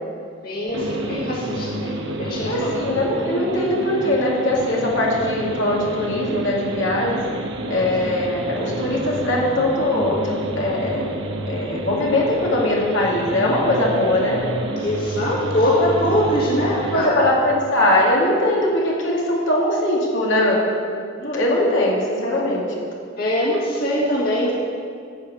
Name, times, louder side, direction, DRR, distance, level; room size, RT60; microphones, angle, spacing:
voice 1, 0.4-2.7 14.8-17.3 23.2-24.5, equal, 50° left, -5 dB, 2.2 m, -22 dB
sound 1, 0.7-17.1, right 1 dB, 65° right, 1.1 m, -29 dB
voice 2, 2.4-7.3 7.7-11.1 11.5-14.4 16.9-20.6 21.2-22.7, left 1 dB, 70° left, -3 dB, 2.4 m, -21 dB
14.0 x 5.6 x 8.7 m, 2.2 s
head